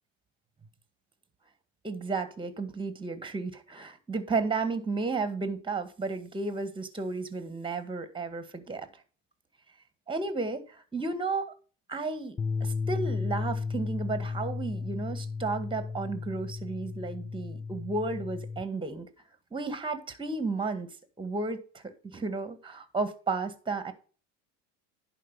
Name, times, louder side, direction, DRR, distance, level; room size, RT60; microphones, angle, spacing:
voice 1, 1.8-8.9 10.1-11.5 11.9-19.1 19.5-20.9 21.2-23.9, right 3 dB, 15° right, 1.7 m, -33 dB
sound 1, 12.4-18.6, left 4 dB, 10° left, 0.6 m, -34 dB
11.0 x 5.1 x 5.4 m
supercardioid pair, 105°, 38 cm